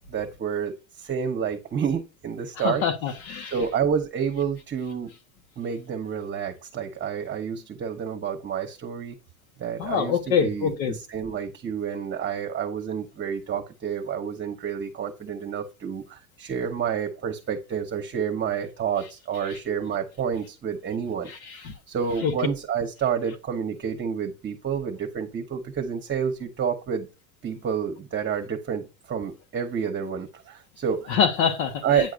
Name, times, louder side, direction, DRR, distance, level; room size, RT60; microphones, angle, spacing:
voice 1, 0.1-2.8 3.5-5.1 5.6-9.2 9.6-21.3 21.9-27.1 27.4-31.2 31.8-32.1, right 7 dB, 25° right, 1.1 m, -29 dB
voice 2, 2.6-3.5 9.8-11.0 22.2-22.3 31.1-31.7, left 7 dB, 80° left, 1.5 m, -24 dB
9.0 x 4.6 x 2.6 m
supercardioid pair, 105°, 42 cm